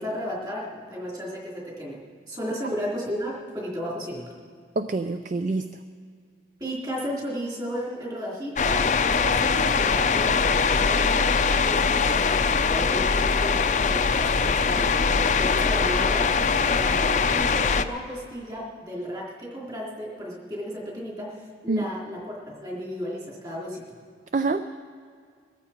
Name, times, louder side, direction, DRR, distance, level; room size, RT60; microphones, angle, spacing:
voice 1, 0.0-2.0 2.3-4.3 6.6-23.8, equal, 25° right, -5 dB, 3.5 m, -34 dB
voice 2, 4.8-5.8 21.7-21.8 24.3-24.7, right 3 dB, 45° right, 9 dB, 0.4 m, -26 dB
sound 1, 8.6-17.8, left 5 dB, 40° left, 0.5 m, -22 dB
22.0 x 14.0 x 4.4 m, 2.1 s
head